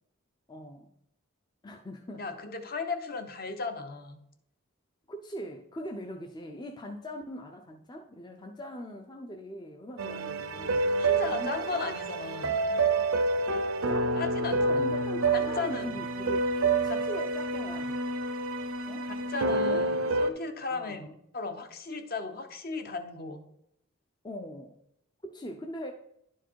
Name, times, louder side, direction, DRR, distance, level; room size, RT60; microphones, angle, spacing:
voice 1, 0.5-0.9 1.6-2.3 2.7-2.8 5.1-12.0 13.9-18.0 18.9-19.1 19.5-19.8 20.7-21.1 24.2-24.8 25.2-25.9, equal, 20° left, 4 dB, 0.5 m, -41 dB
voice 2, 2.2-4.2 11.0-12.6 14.1-14.8 15.3-15.9 16.9-17.0 19.0-23.4, left 4 dB, 45° left, 7 dB, 0.8 m, -36 dB
sound 1, 10.0-20.3, right 3 dB, 80° right, 0.7 m, -28 dB
11.0 x 4.6 x 4.6 m, 0.75 s
head